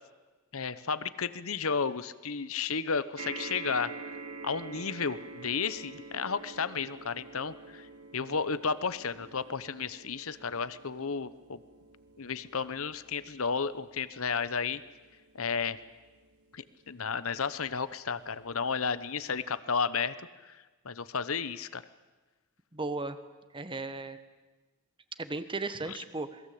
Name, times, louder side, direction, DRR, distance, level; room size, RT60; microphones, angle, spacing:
voice 1, 0.5-3.9 4.4-7.9 8.1-11.6 12.2-14.8 15.3-15.8 16.5-20.1 20.8-21.8 25.9-26.0, left 5 dB, 65° left, 15 dB, 1.0 m, -32 dB
sound 1, 3.2-17.7 18.5-18.6 18.8-18.9, right 4 dB, 85° right, 1.7 m, -47 dB
voice 2, 22.7-23.2 23.5-24.2 25.2-26.4, right 3 dB, 25° right, 11 dB, 1.4 m, -35 dB
27.5 x 21.0 x 8.6 m, 1.3 s
head